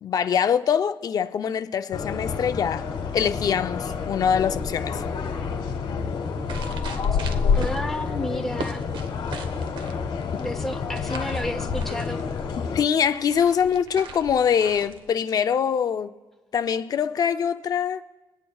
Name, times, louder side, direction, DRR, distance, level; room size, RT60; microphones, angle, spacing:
voice 1, 0.0-2.9 3.1-5.0 10.3-10.4 12.6-16.1 16.5-18.0, left 7 dB, 50° left, 0.4 m, -24 dB
sound 1, 1.9-12.8, left 5 dB, 90° left, 1.1 m, -28 dB
sound 2, 6.3-15.1, right 3 dB, 80° right, 0.9 m, -40 dB
voice 2, 7.5-8.8 10.4-12.2, left 1 dB, 5° left, 0.6 m, -31 dB
23.5 x 8.8 x 2.3 m
wide cardioid pair, 160°, 8 cm